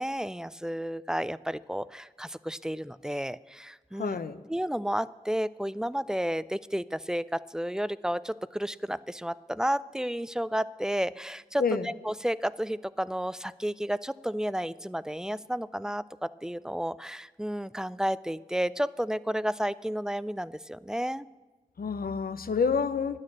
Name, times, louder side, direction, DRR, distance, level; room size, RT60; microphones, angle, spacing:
voice 1, 0.0-4.2 4.5-21.3, equal, 5° right, 18 dB, 0.3 m, -32 dB
voice 2, 4.0-4.4 11.6-11.9 21.8-23.2, left 5 dB, 80° left, 13 dB, 0.6 m, -28 dB
9.6 x 6.5 x 8.5 m, 1.2 s
wide cardioid pair, 45°, 15 cm